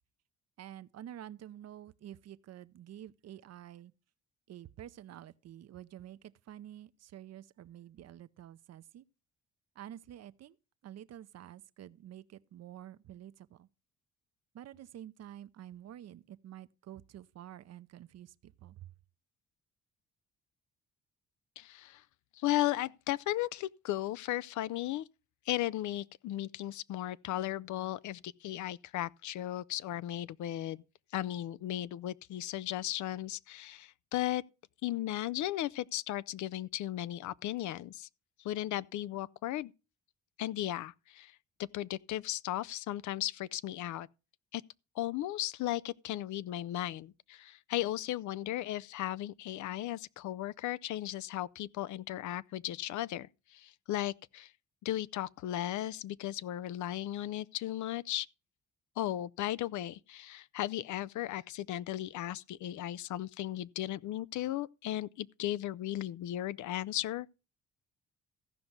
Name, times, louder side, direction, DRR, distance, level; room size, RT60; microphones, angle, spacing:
voice 1, 0.6-3.9 4.5-9.0 9.8-10.6 10.8-13.7 14.5-18.9, right 11 dB, 60° right, 0.6 m, -49 dB
voice 2, 21.6-22.0 22.3-25.1 25.5-30.8 31.1-34.4 34.8-38.1 38.4-39.7 40.4-41.3 41.6-44.1 44.5-44.6 45.0-54.5 54.8-58.3 59.0-67.4, left 14 dB, 70° left, 0.5 m, -36 dB
15.0 x 5.3 x 5.9 m
cardioid pair, 90°, 30 cm